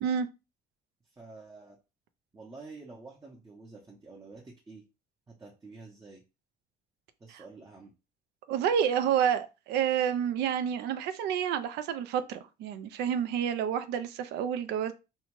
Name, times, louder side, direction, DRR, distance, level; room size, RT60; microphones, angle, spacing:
voice 1, 1.1-1.8 2.3-4.8 5.3-6.2 7.2-7.9, right 3 dB, 20° right, 0.7 m, -49 dB
voice 2, 8.5-14.9, right 8 dB, 80° right, 0.4 m, -29 dB
2.7 x 2.1 x 3.0 m
cardioid pair, 110°, 17 cm